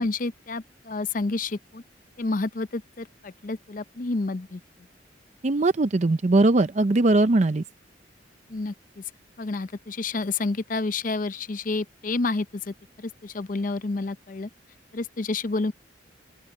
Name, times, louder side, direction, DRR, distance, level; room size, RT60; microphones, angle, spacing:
voice 1, 0.0-1.8 2.2-4.6 8.5-9.0 9.4-14.5 14.9-15.7, left 3 dB, 45° left, 0.6 m, -29 dB
voice 2, 5.4-7.6, right 2 dB, 40° right, 0.5 m, -20 dB
open air
head